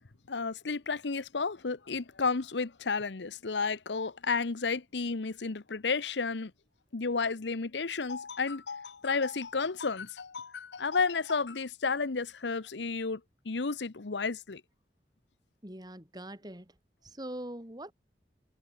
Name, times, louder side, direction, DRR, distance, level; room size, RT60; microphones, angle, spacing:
voice 1, 0.3-6.5 6.9-13.2 13.5-14.6, left 4 dB, 85° left, 0.9 m, -32 dB
voice 2, 15.6-16.7 17.0-17.9, right 1 dB, 25° right, 4.0 m, -42 dB
head